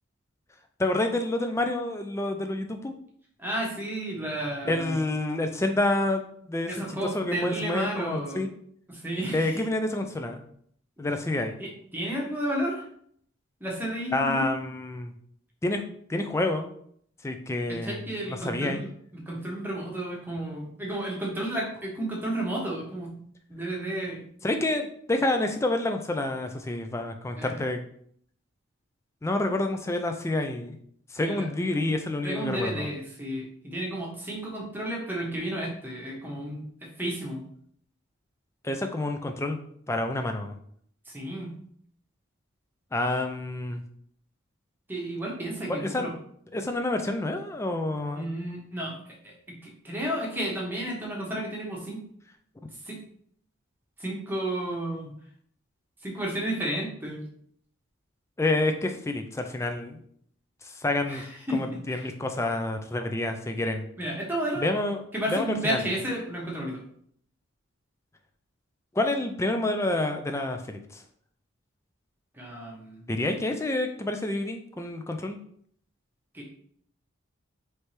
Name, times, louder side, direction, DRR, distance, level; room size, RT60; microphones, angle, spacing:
voice 1, 0.8-2.9 4.7-8.5 9.3-10.4 11.0-11.6 14.1-15.1 15.6-15.8 16.1-16.7 17.2-18.0 18.3-18.8 24.4-27.8 29.2-30.8 31.1-32.9 38.6-39.6 39.9-40.6 42.9-43.8 45.7-46.1 46.5-48.3 58.4-60.0 60.6-61.2 61.5-63.8 64.6-65.0 65.3-65.8 68.9-71.0 73.1-75.4, left 2 dB, 15° left, 5 dB, 0.3 m, -28 dB
voice 2, 3.4-5.0 6.7-8.5 8.9-9.6 11.0-11.1 11.6-12.9 13.6-14.4 17.7-18.9 19.1-23.2 23.5-24.2 27.3-27.5 31.2-31.5 32.2-37.4 41.0-41.6 44.9-46.1 48.2-49.0 49.2-52.0 52.8-53.0 54.0-55.1 56.0-57.2 61.1-62.1 64.0-64.7 65.1-66.8 72.3-73.0 76.3-76.4, right 1 dB, 10° right, -3 dB, 1.0 m, -32 dB
4.3 x 3.2 x 3.2 m, 0.64 s
head